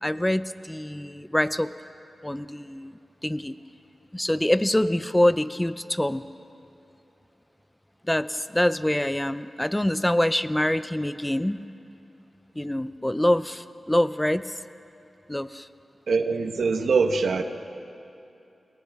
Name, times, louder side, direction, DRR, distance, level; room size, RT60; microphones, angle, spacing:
voice 1, 0.0-1.7 2.2-2.9 3.2-3.5 4.1-6.2 8.1-11.6 12.6-14.4 15.3-15.7, left 1 dB, 10° left, 13 dB, 0.5 m, -25 dB
voice 2, 16.1-17.4, right 4 dB, 90° right, 6 dB, 1.0 m, -23 dB
29.5 x 27.0 x 3.5 m, 2.8 s
wide cardioid pair, 145°, 0 cm